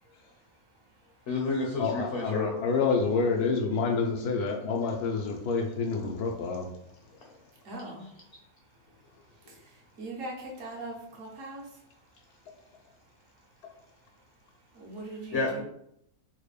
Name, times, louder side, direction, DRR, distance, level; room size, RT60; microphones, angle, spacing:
voice 1, 1.3-2.5 15.3-15.6, left 3 dB, 60° left, -1 dB, 0.9 m, -30 dB
voice 2, 1.8-6.7, left 4 dB, 80° left, 1 dB, 1.1 m, -28 dB
voice 3, 7.7-8.0 10.0-11.6 14.8-15.6, right 2 dB, 60° right, -2 dB, 1.3 m, -40 dB
4.1 x 2.2 x 3.2 m, 0.74 s
omnidirectional pair, 1.6 m